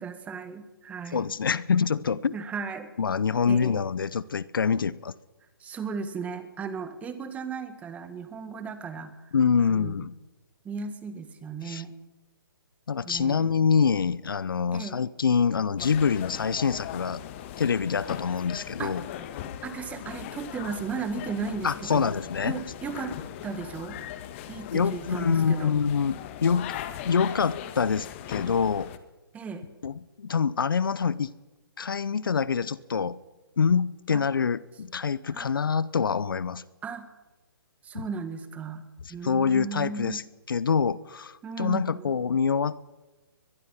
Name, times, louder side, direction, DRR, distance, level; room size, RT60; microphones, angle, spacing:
voice 1, 0.0-1.3 2.3-2.9 3.4-3.8 5.6-9.3 9.7-10.1 10.6-11.9 13.0-13.5 14.7-15.0 18.8-19.2 19.6-22.1 22.4-23.2 23.4-24.0 24.5-25.7 29.3-29.6 34.1-34.2 35.3-35.6 36.8-37.1 37.8-38.8 39.1-40.2 41.4-42.2, right 5 dB, 10° right, 1.8 m, -36 dB
voice 2, 1.1-2.3 3.0-5.1 9.3-10.1 11.6-11.8 12.9-17.2 17.6-19.0 21.6-22.6 24.7-26.7 27.0-28.9 29.8-31.3 31.8-33.2 33.6-36.6 37.9-38.1 39.2-40.2 40.5-42.7, left 6 dB, 65° left, 0.8 m, -25 dB
sound 1, 15.8-29.0, left 11 dB, 35° left, 1.5 m, -39 dB
22.0 x 22.0 x 5.7 m
figure-of-eight pair, 135°, 12 cm